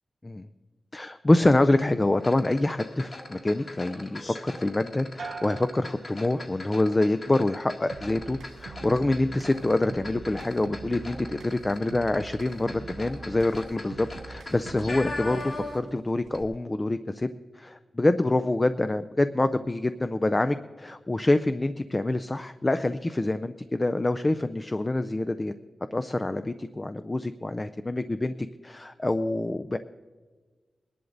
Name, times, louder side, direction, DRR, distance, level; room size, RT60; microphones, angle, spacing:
voice 1, 0.9-17.3 17.6-25.5 25.9-28.3 28.6-29.8, left 2 dB, 20° left, 11 dB, 0.4 m, -26 dB
sound 1, 2.2-16.0 16.3-16.4, left 2 dB, 40° left, 1.8 m, -40 dB
sound 2, 5.2-6.9 7.3-7.9, right 4 dB, 60° right, 1.0 m, -43 dB
sound 3, 7.9-15.9, right 4 dB, 85° right, 0.6 m, -44 dB
21.5 x 11.0 x 3.9 m, 1.4 s
wide cardioid pair, 145°, 0 cm